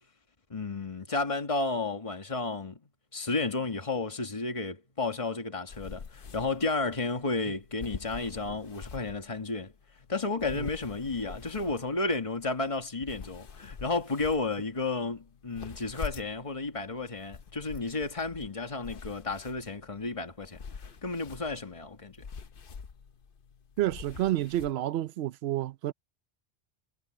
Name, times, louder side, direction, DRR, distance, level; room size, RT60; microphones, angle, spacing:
voice 1, 0.5-2.8 3.1-9.7 10.1-20.6 21.0-22.3, left 3 dB, 30° left, 1.7 m, -32 dB
sound 1, 5.7-24.7, left 5 dB, 60° left, 1.1 m, -46 dB
voice 2, 23.8-25.9, right 14 dB, 75° right, 0.8 m, -29 dB
omnidirectional pair, 1.1 m